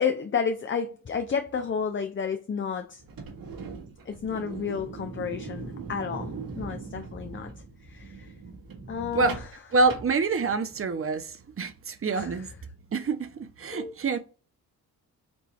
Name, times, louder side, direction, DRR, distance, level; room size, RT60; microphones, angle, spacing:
voice 1, 0.0-3.0 4.1-7.5 7.9-8.3 8.9-9.4 12.1-12.5 13.7-13.9, left 6 dB, 30° left, 0.6 m, -31 dB
sound 1, 3.0-10.8, right 4 dB, 55° right, 1.7 m, -40 dB
voice 2, 9.7-12.5 12.9-14.2, right 3 dB, 35° right, 0.8 m, -26 dB
4.5 x 2.6 x 3.1 m
supercardioid pair, 45°, 41 cm